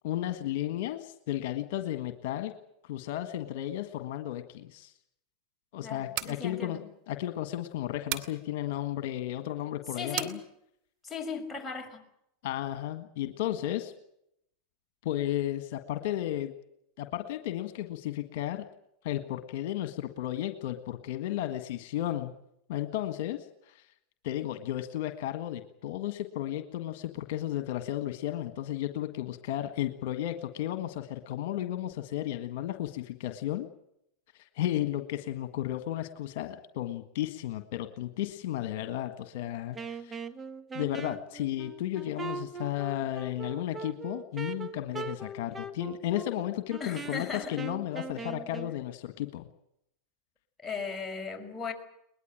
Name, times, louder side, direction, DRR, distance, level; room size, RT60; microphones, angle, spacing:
voice 1, 0.0-2.5 2.9-4.9 5.7-6.8 7.1-10.4 12.4-13.9 15.0-16.5 17.0-18.6 19.0-22.3 22.7-23.8 24.2-33.7 34.3-40.2 40.7-49.5, left 13 dB, 65° left, 9 dB, 1.6 m, -34 dB
voice 2, 5.8-6.8 10.0-10.3 11.0-12.0 46.8-47.6 50.6-51.7, left 5 dB, 15° left, 2 dB, 5.8 m, -37 dB
sound 1, 5.9-6.4 8.1-8.4 10.2-10.4, right 15 dB, 55° right, 2.3 m, -34 dB
Wind instrument woodwind instrument, 39.7-48.7, right 4 dB, 20° right, 1.8 m, -41 dB
22.0 x 20.5 x 8.9 m, 0.77 s
hypercardioid pair, 95°, 0 cm